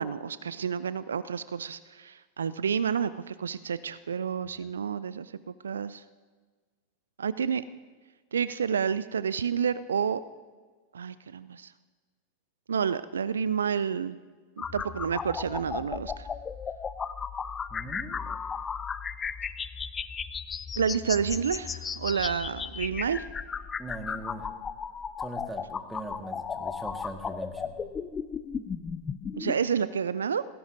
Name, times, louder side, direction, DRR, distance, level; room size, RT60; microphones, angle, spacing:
voice 1, 0.0-5.3 5.6-6.0 7.2-7.6 8.3-10.2 10.9-11.7 12.7-14.2 14.6-16.3 20.8-23.3 29.3-30.4, right 7 dB, 75° right, 16 dB, 0.3 m, -29 dB
sound 1, 14.6-29.6, left 6 dB, 20° left, 0.5 m, -35 dB
voice 2, 17.7-18.4 23.8-24.5 25.2-27.8, right 1 dB, 5° right, 5 dB, 1.5 m, -41 dB
18.0 x 16.0 x 2.6 m, 1.4 s
figure-of-eight pair, 90°, 0 cm